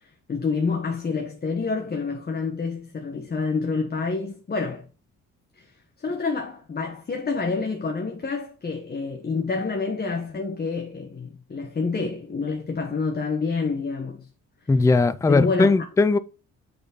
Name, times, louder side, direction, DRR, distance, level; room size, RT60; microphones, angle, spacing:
voice 1, 0.3-4.9 5.6-5.7 6.0-14.3 15.3-15.7, left 4 dB, 30° left, 1.2 m, -28 dB
voice 2, 14.7-16.2, left 3 dB, 10° left, 0.4 m, -19 dB
6.7 x 4.2 x 5.3 m
cardioid pair, 90°, 30 cm